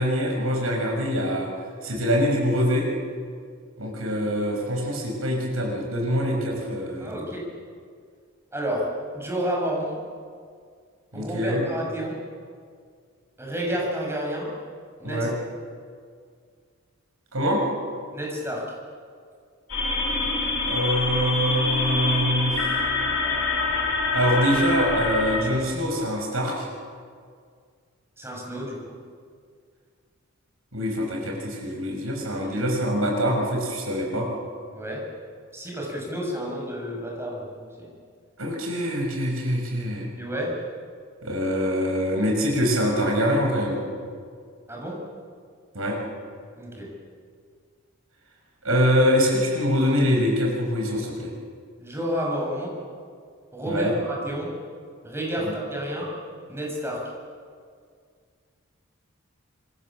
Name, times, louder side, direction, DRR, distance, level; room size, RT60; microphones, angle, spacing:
voice 1, 0.0-1.5 1.8-2.9 3.8-7.1 11.1-11.6 15.0-15.3 17.3-17.6 20.7-22.7 24.1-26.6 30.7-34.3 38.4-40.1 41.2-43.8 45.7-46.0 48.6-51.3 53.6-53.9 55.4-55.5, equal, 80° right, 1 dB, 6.5 m, -24 dB
voice 2, 7.0-7.5 8.5-10.0 11.1-12.2 13.4-14.5 15.0-15.3 18.1-18.7 28.2-29.0 32.5-32.6 34.7-35.1 35.5-37.9 40.2-40.6 44.7-45.1 46.6-47.0 51.8-52.8 53.5-54.5 55.0-56.2 56.5-57.1, equal, 10° right, -2 dB, 6.7 m, -30 dB
sound 1, 19.7-25.4, left 3 dB, 75° left, 7.6 m, -25 dB
27.0 x 25.5 x 7.5 m, 2.1 s
head